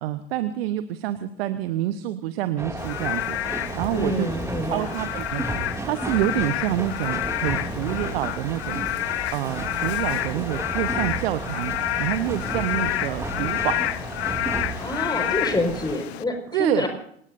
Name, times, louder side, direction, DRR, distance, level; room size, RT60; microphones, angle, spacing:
voice 1, 0.0-4.3 4.6-8.9 9.3-13.9 16.5-16.9, right 12 dB, 65° right, 11 dB, 1.1 m, -27 dB
sound 1, 2.6-16.0, right 2 dB, 10° right, 2.5 m, -33 dB
Frog / Rain, 2.8-16.2, left 14 dB, 70° left, 0.8 m, -29 dB
voice 2, 3.9-4.9 14.8-16.9, left 1 dB, 10° left, 5 dB, 5.1 m, -27 dB
27.5 x 19.0 x 2.7 m, 0.68 s
figure-of-eight pair, 80°, 33 cm